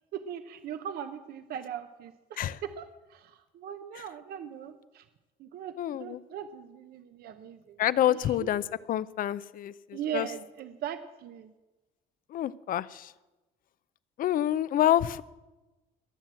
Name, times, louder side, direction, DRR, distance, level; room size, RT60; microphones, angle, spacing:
voice 1, 0.1-5.0 5.4-8.5 9.9-11.5, right 9 dB, 65° right, 9 dB, 0.9 m, -40 dB
voice 2, 5.8-6.2 7.8-8.6 8.9-10.3 12.3-13.1 14.2-15.2, left 12 dB, 55° left, 18 dB, 0.6 m, -27 dB
21.0 x 7.4 x 7.5 m, 1.1 s
cardioid pair, 110°, 17 cm